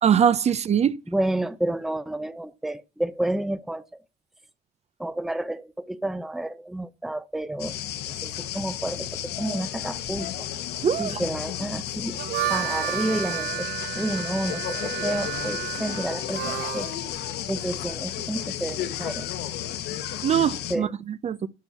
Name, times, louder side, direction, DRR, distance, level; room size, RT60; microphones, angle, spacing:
voice 1, 0.0-1.0 10.8-11.2 20.2-21.5, right 8 dB, 40° right, 0.7 m, -22 dB
voice 2, 1.1-3.8 5.0-7.8 8.1-10.5 11.0-12.2 12.5-13.7 13.9-16.9 17.5-19.3 20.7-20.9, right 1 dB, ahead, 0.7 m, -30 dB
sound 1, 7.6-20.8, left 11 dB, 75° left, 1.3 m, -33 dB
Harmonica, 12.0-17.0, right 16 dB, 75° right, 0.5 m, -32 dB
12.0 x 4.6 x 7.0 m
cardioid pair, 110°, 17 cm